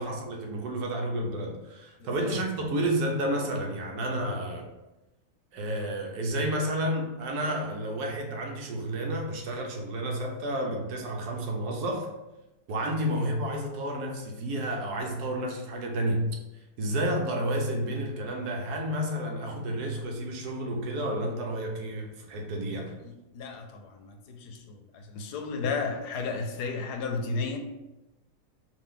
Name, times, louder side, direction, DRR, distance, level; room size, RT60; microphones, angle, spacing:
voice 1, 0.0-4.7 5.5-12.1 12.7-16.3 16.8-22.9, right 1 dB, 75° right, 2 dB, 1.3 m, -31 dB
voice 2, 2.0-2.4 13.1-13.4 23.0-27.6, left 4 dB, 85° left, 5 dB, 1.2 m, -34 dB
5.1 x 2.6 x 3.7 m, 0.99 s
omnidirectional pair, 1.7 m